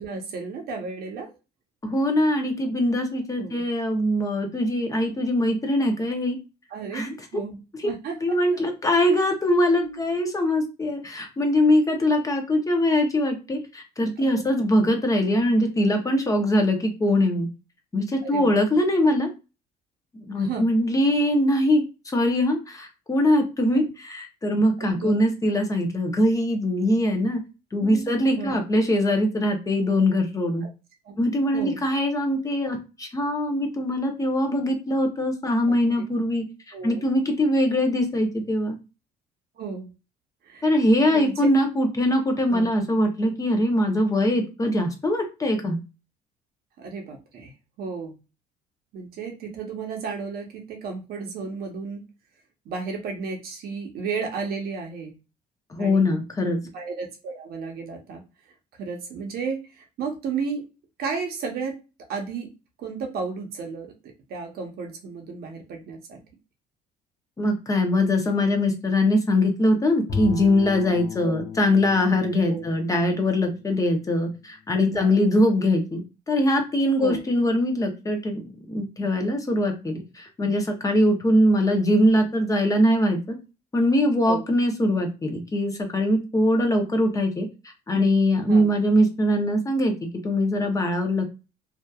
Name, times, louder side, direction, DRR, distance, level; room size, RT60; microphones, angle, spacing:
voice 1, 0.0-1.3 3.4-3.6 6.7-7.6 7.8-8.4 9.8-10.2 14.2-14.4 18.2-18.5 20.4-20.7 23.6-23.9 24.8-25.2 27.8-28.6 30.6-30.7 31.0-31.2 31.5-31.8 35.7-36.1 36.7-37.0 39.6-39.9 40.4-40.7 41.1-41.4 42.5-42.7 46.8-48.2 48.9-52.0 52.6-55.1 55.8-56.1 56.4-58.2 58.8-60.7 61.0-61.8 62.1-62.5 62.8-66.2 71.2-71.4 72.4-72.7 74.9-75.1 77.0-77.2 84.3-84.4 86.6-86.7 88.5-88.7, right 5 dB, 65° right, 3 dB, 0.7 m, -33 dB
voice 2, 1.8-6.4 6.9-7.1 7.8-7.9 8.2-17.5 17.9-19.3 20.1-21.8 22.1-23.8 24.4-27.4 27.7-30.6 31.2-36.4 36.8-38.8 40.6-45.8 55.7-56.6 67.4-78.4 78.7-83.4 83.7-87.5 87.9-91.3, left 1 dB, 20° left, 3 dB, 0.6 m, -22 dB
Bowed string instrument, 70.1-74.3, left 6 dB, 50° left, 0.8 m, -35 dB
2.7 x 2.3 x 2.3 m, 0.29 s
cardioid pair, 110°, 17 cm